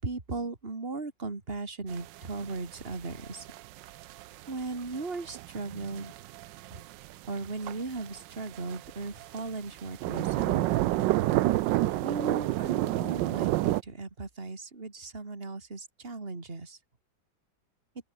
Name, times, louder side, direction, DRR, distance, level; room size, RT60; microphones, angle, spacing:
voice 1, 0.0-3.5 4.5-6.1 6.7-6.8 7.3-10.7 12.0-16.8, right 3 dB, 30° right, 3.1 m, -37 dB
sound 1, 1.9-13.8, right 16 dB, 75° right, 1.3 m, -30 dB
open air
omnidirectional pair, 2.1 m